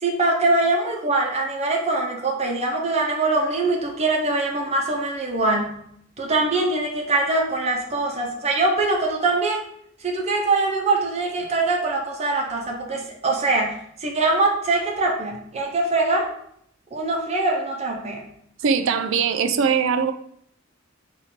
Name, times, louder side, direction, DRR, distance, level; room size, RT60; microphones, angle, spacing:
voice 1, 0.0-5.8 6.2-9.6 10.0-16.3 16.9-18.3, right 2 dB, 35° right, 0 dB, 0.8 m, -23 dB
voice 2, 18.6-20.1, right 6 dB, 70° right, 10 dB, 0.4 m, -21 dB
4.3 x 2.6 x 4.3 m, 0.70 s
head